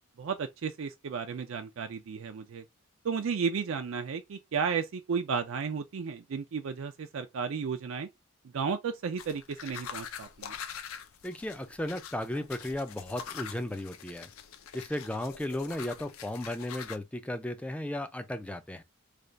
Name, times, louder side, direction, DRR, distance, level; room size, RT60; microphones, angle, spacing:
voice 1, 0.2-2.6 3.0-8.1 8.5-10.5, right 6 dB, 65° right, 0.4 m, -33 dB
sound 1, 9.2-17.0, left 7 dB, 75° left, 0.5 m, -44 dB
voice 2, 11.2-14.3 14.7-18.8, left 1 dB, 5° left, 0.4 m, -35 dB
3.3 x 2.4 x 3.8 m
head